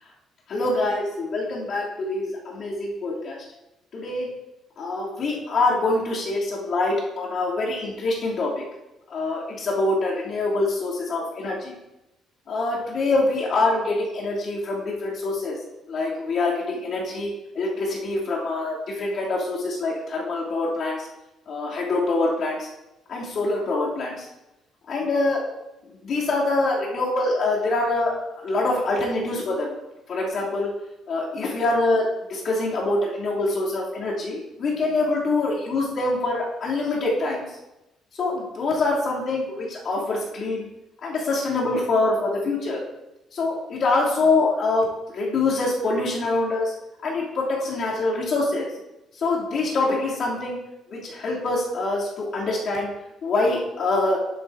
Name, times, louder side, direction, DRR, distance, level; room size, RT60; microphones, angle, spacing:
voice 1, 0.5-3.4 3.9-4.3 4.8-8.5 9.1-11.7 12.5-15.5 15.9-21.1 21.5-22.7 23.1-24.3 24.9-25.4 26.0-29.7 30.1-30.7 31.1-32.0 32.3-37.4 38.2-40.7 41.0-42.8 43.3-46.7 47.0-48.7 49.2-50.6 50.9-52.9 53.2-54.2, left 2 dB, 45° left, -5 dB, 2.8 m, -25 dB
11.0 x 8.2 x 2.6 m, 0.94 s
cardioid pair, 165°, 0 cm